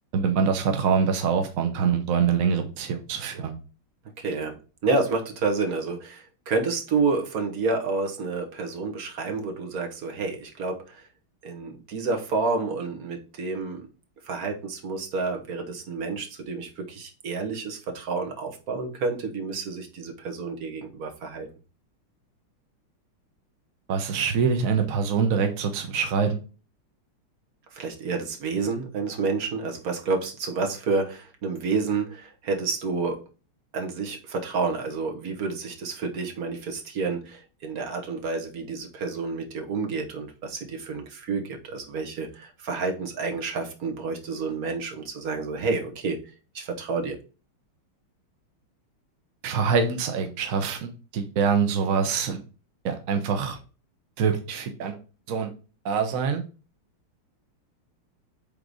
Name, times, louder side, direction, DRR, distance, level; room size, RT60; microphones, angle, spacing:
voice 1, 0.1-3.5 23.9-26.4 49.4-52.4 52.8-53.6 54.2-55.0 55.3-55.5 55.8-56.4, right 6 dB, 70° right, 6 dB, 0.8 m, -24 dB
voice 2, 4.2-11.0 11.4-13.9 14.3-21.5 27.7-33.2 33.7-46.2 46.5-47.2, right 4 dB, 50° right, 2 dB, 1.4 m, -29 dB
5.3 x 3.8 x 4.7 m, 0.34 s
omnidirectional pair, 2.4 m